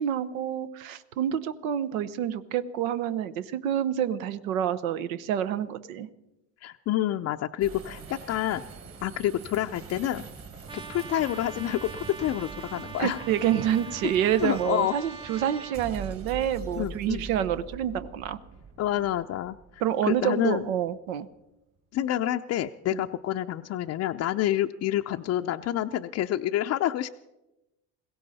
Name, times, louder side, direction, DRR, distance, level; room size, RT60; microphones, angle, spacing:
voice 1, 0.0-6.1 13.0-18.4 19.8-21.3 22.9-23.0, right 10 dB, 90° right, 12 dB, 1.0 m, -28 dB
voice 2, 6.6-8.6 9.0-10.2 10.7-13.2 14.4-14.9 16.7-17.3 18.8-20.7 21.9-27.1, left 12 dB, 40° left, 5 dB, 0.5 m, -28 dB
sound 1, 7.6-21.0, right 5 dB, 35° right, 2.0 m, -44 dB
Trumpet, 10.7-15.8, right 4 dB, 10° right, 0.6 m, -42 dB
21.0 x 16.5 x 4.1 m, 0.95 s
supercardioid pair, 105°, 40 cm